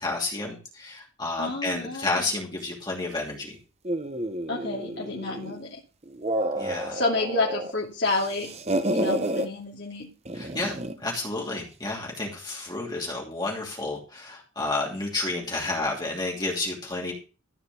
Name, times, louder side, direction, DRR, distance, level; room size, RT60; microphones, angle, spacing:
voice 1, 0.0-3.6 6.6-7.0 10.3-17.1, left 2 dB, 20° left, -2 dB, 2.8 m, -31 dB
voice 2, 1.4-2.3 4.5-5.8 6.9-8.5 8.9-10.1, left 2 dB, 55° left, -3 dB, 2.6 m, -29 dB
sound 1, 3.8-5.6 6.0-7.7 8.0-9.5 10.3-11.0, right 1 dB, 30° right, 0.9 m, -30 dB
14.5 x 5.1 x 6.9 m, 0.33 s
head